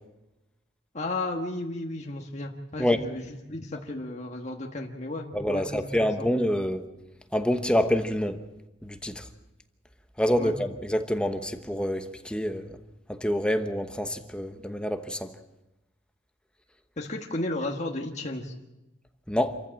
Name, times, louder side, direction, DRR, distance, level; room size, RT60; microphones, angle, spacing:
voice 1, 0.9-5.9 6.2-6.3 10.4-10.5 17.0-18.5, left 2 dB, 40° left, 1.5 m, -34 dB
voice 2, 5.3-6.9 7.3-8.4 8.8-9.2 10.2-12.8 13.1-15.3 19.3-19.6, equal, 5° left, 1.0 m, -27 dB
28.0 x 14.5 x 7.6 m
head